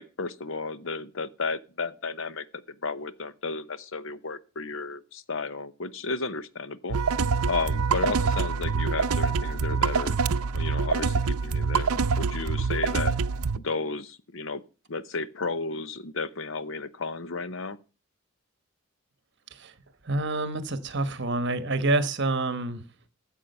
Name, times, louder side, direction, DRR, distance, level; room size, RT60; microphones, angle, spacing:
voice 1, 0.0-2.5 2.8-7.0 7.5-10.2 10.5-13.1 13.6-14.6 14.9-17.8, left 4 dB, 60° left, 0.8 m, -33 dB
sound 1, 6.9-13.6, right 5 dB, 90° right, 0.6 m, -25 dB
voice 2, 20.0-22.8, right 2 dB, 50° right, 1.2 m, -27 dB
13.5 x 7.4 x 5.4 m
head